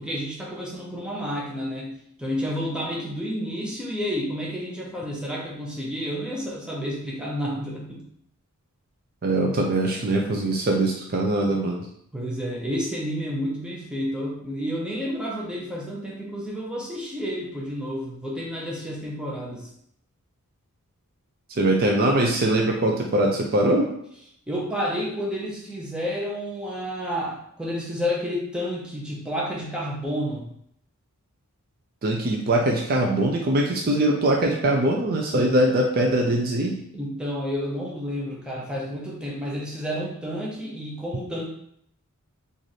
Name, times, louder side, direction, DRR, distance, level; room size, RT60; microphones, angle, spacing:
voice 1, 0.0-8.0 12.1-19.7 24.5-30.5 35.3-35.5 36.9-41.4, equal, 5° right, -4 dB, 0.8 m, -30 dB
voice 2, 9.2-11.9 21.6-23.9 32.0-36.8, right 1 dB, 45° right, 1 dB, 0.4 m, -22 dB
3.1 x 2.5 x 4.0 m, 0.70 s
head